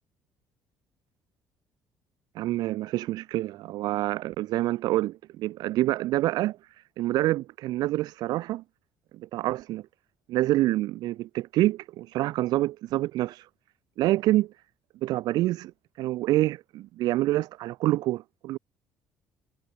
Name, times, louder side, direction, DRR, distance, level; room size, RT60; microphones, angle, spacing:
voice 1, 2.4-8.6 9.1-9.8 10.3-13.5 14.0-14.5 15.0-15.7 16.0-18.6, right 16 dB, 75° right, 1.7 m, -27 dB
supercardioid pair, 85°, 7 cm